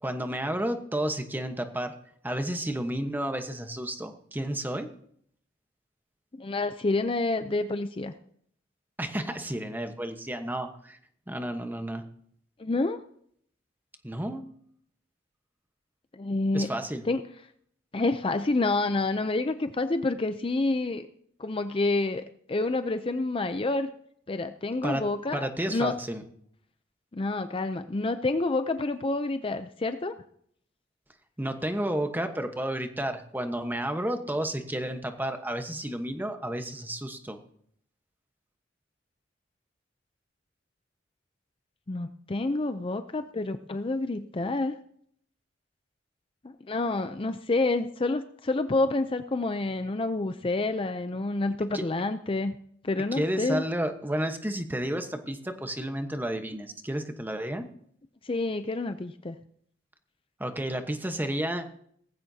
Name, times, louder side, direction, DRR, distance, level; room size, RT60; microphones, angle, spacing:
voice 1, 0.0-1.9 2.2-4.9 9.0-11.0 11.3-12.0 14.0-14.4 16.5-17.0 24.8-25.0 25.3-26.2 31.4-37.4 51.7-51.8 53.1-57.7 60.4-61.6, right 1 dB, 10° right, 6 dB, 1.1 m, -31 dB
voice 2, 6.4-8.1 12.6-13.0 16.1-16.7 17.1-17.2 17.9-21.1 21.4-23.9 24.3-26.0 27.1-30.1 41.9-44.8 46.4-52.6 52.8-53.6 58.2-59.4, left 2 dB, 30° left, 9 dB, 0.5 m, -28 dB
18.5 x 15.5 x 2.8 m, 0.66 s
head